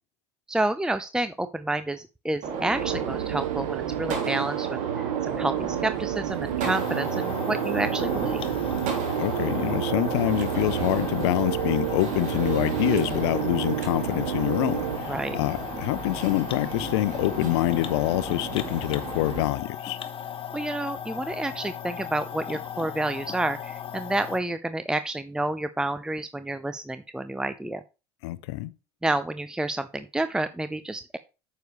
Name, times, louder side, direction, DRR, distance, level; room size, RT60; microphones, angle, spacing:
voice 1, 0.5-4.7 5.2-8.4 15.1-15.4 20.5-27.8 29.0-31.2, right 2 dB, 5° right, 0.7 m, -29 dB
Gunshot gunfire, 2.4-19.4, right 5 dB, 55° right, 2.6 m, -34 dB
sound 1, 2.8-15.0, right 12 dB, 85° right, 0.5 m, -30 dB
sound 2, 6.6-24.4, left 9 dB, 40° left, 1.2 m, -37 dB
voice 2, 9.2-20.0 28.2-28.7, left 17 dB, 70° left, 0.8 m, -26 dB
9.2 x 6.9 x 3.2 m
hypercardioid pair, 70°, 15 cm